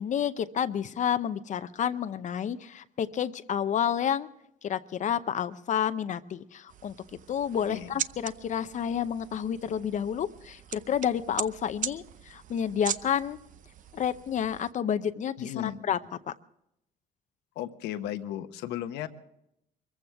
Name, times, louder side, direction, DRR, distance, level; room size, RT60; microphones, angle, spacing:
voice 1, 0.0-4.3 4.6-7.0 7.3-13.4 13.9-16.0, left 9 dB, 45° left, 11 dB, 0.7 m, -30 dB
sound 1, 6.7-14.7, right 9 dB, 50° right, 0.7 m, -40 dB
voice 2, 15.4-15.8 17.5-19.1, left 12 dB, 85° left, 9 dB, 1.2 m, -35 dB
24.0 x 15.0 x 3.5 m, 0.79 s
cardioid pair, 110°, 17 cm